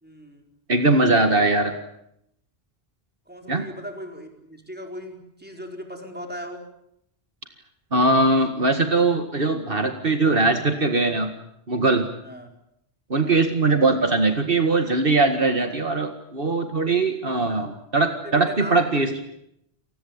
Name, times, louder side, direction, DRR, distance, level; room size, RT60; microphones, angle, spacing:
voice 1, 0.0-0.5 1.3-1.5 3.3-6.7 12.2-12.5 13.1-13.4 17.5-17.7 18.2-19.2, equal, 10° right, 4 dB, 4.6 m, -38 dB
voice 2, 0.7-1.7 3.5-3.6 7.9-11.3 11.7-12.1 13.1-19.2, right 3 dB, 60° right, 7 dB, 2.2 m, -21 dB
29.5 x 19.5 x 8.9 m, 0.78 s
omnidirectional pair, 1.0 m